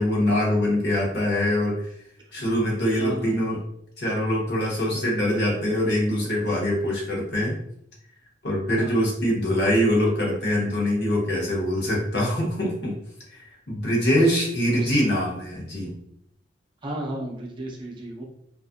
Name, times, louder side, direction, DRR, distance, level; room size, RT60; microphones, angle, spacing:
voice 1, 0.0-1.9 2.3-3.6 4.0-7.6 8.4-13.0 13.3-15.9, equal, 65° left, -3 dB, 0.9 m, -23 dB
voice 2, 3.0-3.3 8.8-9.0 14.7-15.0 16.8-18.2, right 1 dB, 25° right, -1 dB, 0.5 m, -33 dB
2.4 x 2.4 x 2.5 m, 0.73 s
head